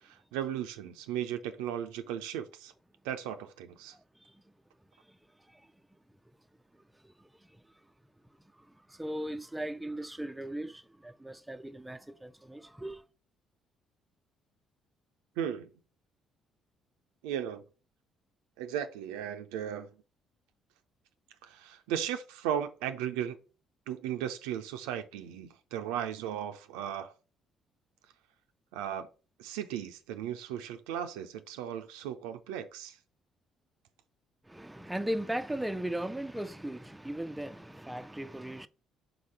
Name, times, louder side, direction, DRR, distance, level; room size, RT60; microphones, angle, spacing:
voice 1, 0.0-2.7 3.0-3.9 15.4-15.7 17.2-17.6 18.6-19.9 21.4-23.4 23.9-27.1 28.7-29.1 29.4-33.0, right 9 dB, 70° right, 0.5 m, -36 dB
voice 2, 8.9-13.0 34.5-38.7, right 1 dB, 10° right, 0.5 m, -37 dB
4.9 x 4.1 x 5.5 m
figure-of-eight pair, 45°, 0 cm